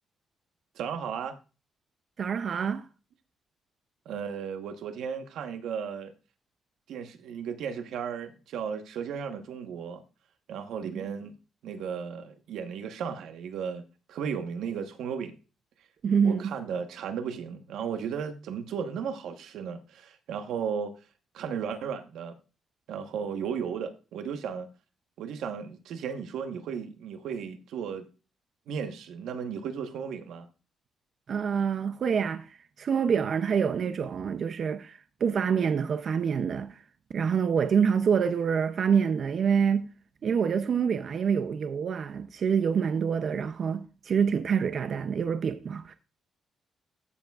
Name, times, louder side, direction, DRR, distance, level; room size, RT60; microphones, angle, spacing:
voice 1, 0.7-1.4 4.0-6.1 6.9-10.0 10.5-11.3 11.6-13.8 14.1-15.4 16.2-20.9 21.3-22.4 22.9-24.7 25.2-28.1 28.7-30.5, right 7 dB, 85° right, 1.1 m, -35 dB
voice 2, 2.2-2.9 10.8-11.0 16.0-16.5 31.3-36.8 37.1-39.9 40.2-45.9, right 7 dB, 45° right, 0.4 m, -26 dB
14.0 x 7.1 x 2.3 m
cardioid pair, 165°, 0 cm